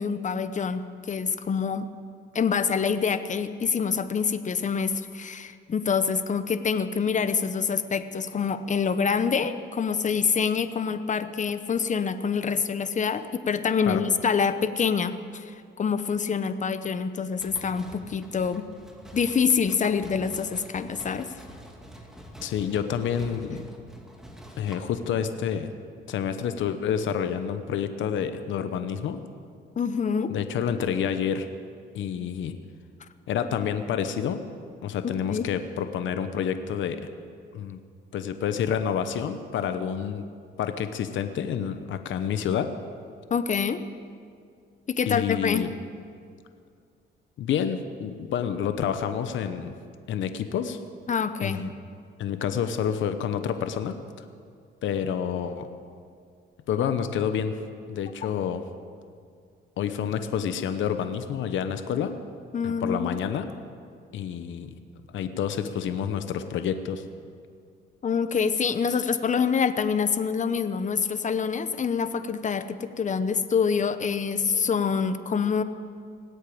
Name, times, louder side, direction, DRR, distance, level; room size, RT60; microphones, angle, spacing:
voice 1, 0.0-1.9 2.3-18.6 19.1-21.4 29.8-30.3 35.3-35.5 43.3-43.8 44.9-45.7 51.1-51.6 58.2-58.3 62.5-63.2 68.0-75.6, left 6 dB, 40° left, 11 dB, 0.9 m, -26 dB
sound 1, 17.4-24.8, equal, ahead, 2.3 m, -46 dB
voice 2, 22.4-23.6 24.6-25.7 26.1-29.2 30.3-31.5 31.9-32.5 33.3-34.4 34.8-37.0 37.5-37.8 38.1-40.3 40.6-42.7 45.1-45.7 47.4-49.7 50.1-50.8 51.4-51.7 52.2-54.0 54.8-55.7 56.7-57.6 57.9-58.6 59.8-62.1 62.6-63.5 64.1-64.7 65.1-67.1, left 8 dB, 75° left, 9 dB, 0.9 m, -28 dB
19.0 x 8.4 x 8.5 m, 2.2 s
cardioid pair, 90°, 20 cm